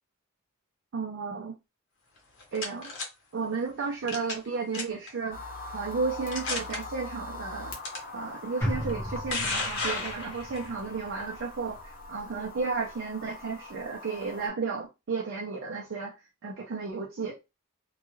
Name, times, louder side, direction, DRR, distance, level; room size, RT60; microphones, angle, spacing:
voice 1, 0.9-1.5 2.5-2.9 3.3-5.4 5.7-7.7 8.1-16.2 16.4-17.4, right 4 dB, 60° right, 0.5 m, -33 dB
sound 1, 2.2-3.1 4.1-4.5 4.7-5.1 5.7-5.8 6.3-6.8 7.8-8.0 8.9-10.7, left 3 dB, 65° left, 0.9 m, -32 dB
sound 2, 5.3-14.5, left 2 dB, 45° left, 0.8 m, -42 dB
sound 3, 8.6-13.1 13.4-13.5, equal, 10° left, 0.8 m, -37 dB
2.3 x 2.3 x 3.0 m
head